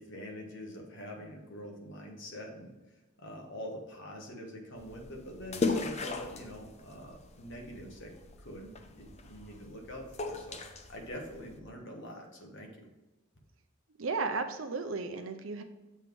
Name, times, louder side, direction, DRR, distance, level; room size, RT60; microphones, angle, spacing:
voice 1, 0.0-2.7 3.2-8.1 8.4-12.9, equal, 60° left, 1 dB, 1.5 m, -45 dB
sound 1, 4.8-11.6, left 3 dB, 30° left, 0.6 m, -38 dB
voice 2, 14.0-15.6, right 4 dB, 70° right, 7 dB, 0.7 m, -34 dB
7.3 x 3.6 x 6.1 m, 1.1 s
head